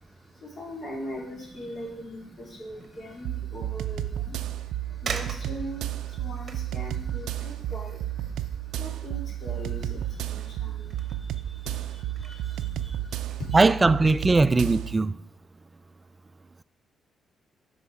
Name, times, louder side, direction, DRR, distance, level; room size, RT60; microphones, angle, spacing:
voice 1, 0.1-13.6, equal, 40° left, 3.0 m, -41 dB
sound 1, 2.7-3.1 3.6-3.7 4.5-4.6 5.0-10.0 10.3-11.8 12.1-12.5 12.9-14.5 14.9-15.0, right 5 dB, 45° right, 1.0 m, -43 dB
sound 2, 3.2-15.0, right 12 dB, 85° right, 0.4 m, -32 dB
voice 2, 13.5-15.1, right 3 dB, 25° right, 0.4 m, -20 dB
8.0 x 5.7 x 4.7 m
cardioid pair, 90°, 0 cm